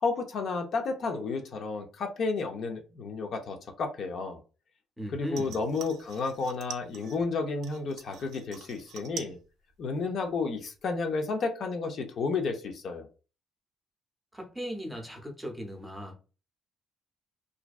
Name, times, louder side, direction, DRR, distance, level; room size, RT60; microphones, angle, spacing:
voice 1, 0.0-4.4 5.1-9.4 9.8-13.1, left 4 dB, 55° left, 0.4 m, -32 dB
voice 2, 5.0-5.6 14.3-16.2, equal, 5° right, 0.6 m, -38 dB
sound 1, 5.3-7.2 7.6-9.4 9.7-10.3 10.6-10.7, right 8 dB, 70° right, 0.4 m, -45 dB
2.5 x 2.1 x 2.3 m
cardioid pair, 115°, 0 cm